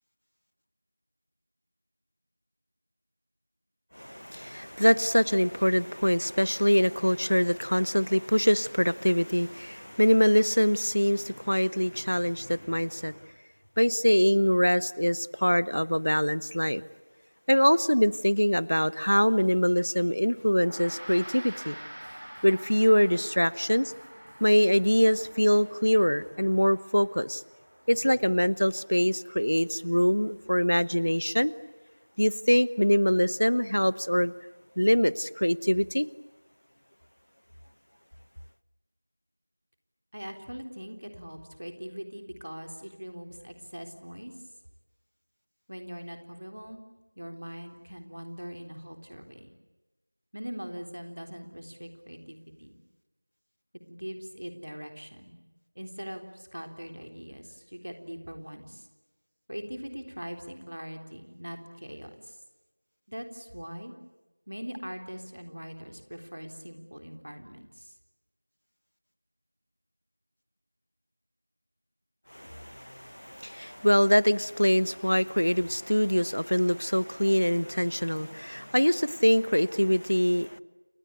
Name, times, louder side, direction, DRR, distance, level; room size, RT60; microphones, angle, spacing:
voice 1, 3.9-13.2 13.8-16.8 17.5-21.8 22.4-23.9 24.4-27.4 27.9-31.5 32.2-34.3 34.8-36.1 72.3-80.6, equal, 60° left, 18 dB, 1.0 m, -24 dB
Drum kit, 19.0-26.5, equal, 35° left, 6.6 m, -57 dB
Gong, 20.5-30.1, right 1 dB, 25° right, 1.0 m, -47 dB
voice 2, 40.1-44.3 45.7-46.8 47.2-49.5 50.3-52.8 53.9-55.4 55.8-58.9 59.5-62.4 63.1-63.9 64.5-67.9, equal, 50° right, 5 dB, 3.8 m, -41 dB
29.5 x 22.5 x 8.5 m, 1.1 s
figure-of-eight pair, 180°, 0 cm